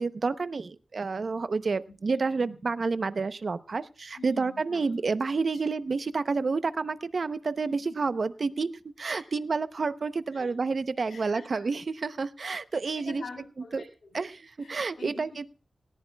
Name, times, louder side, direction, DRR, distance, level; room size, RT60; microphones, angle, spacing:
voice 1, 0.0-13.2 13.7-13.8 14.1-15.5, right 4 dB, 45° right, 13 dB, 0.7 m, -29 dB
voice 2, 4.2-4.8 5.5-5.6 7.7-7.9 9.1-9.3 10.3-10.5 11.1-11.7 12.7-14.2 14.6-15.2, left 4 dB, 85° left, 3 dB, 6.3 m, -46 dB
19.0 x 18.5 x 2.3 m, 0.34 s
wide cardioid pair, 170°, 0 cm